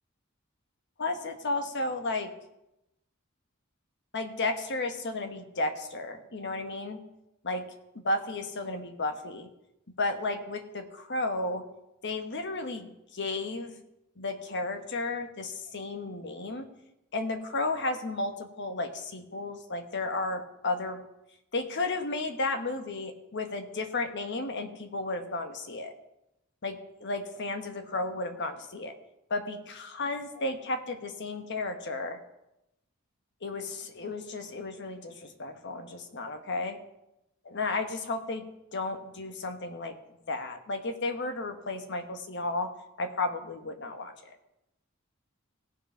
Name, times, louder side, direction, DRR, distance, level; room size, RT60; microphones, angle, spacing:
voice 1, 1.0-2.3 4.1-7.0 7.4-7.6 7.9-9.5 10.0-11.6 12.0-13.7 14.2-16.7 17.1-21.0 21.5-25.9 26.6-28.9 29.3-32.2 33.4-36.8 37.4-38.4 38.7-39.9 40.3-42.7 43.0-44.3, left 2 dB, 60° left, 7 dB, 1.2 m, -33 dB
17.0 x 5.8 x 5.5 m, 0.89 s
head